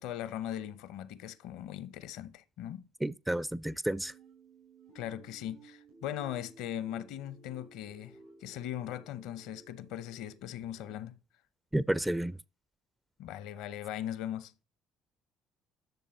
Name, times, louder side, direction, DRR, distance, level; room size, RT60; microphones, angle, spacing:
voice 1, 0.0-2.9 4.9-11.2 13.2-14.5, left 11 dB, 70° left, 0.7 m, -39 dB
voice 2, 3.0-4.1 11.7-12.4, right 1 dB, 10° right, 0.4 m, -31 dB
sound 1, 3.9-10.9, right 3 dB, 90° right, 6.2 m, -57 dB
10.5 x 6.7 x 4.3 m
hypercardioid pair, 60°, 0 cm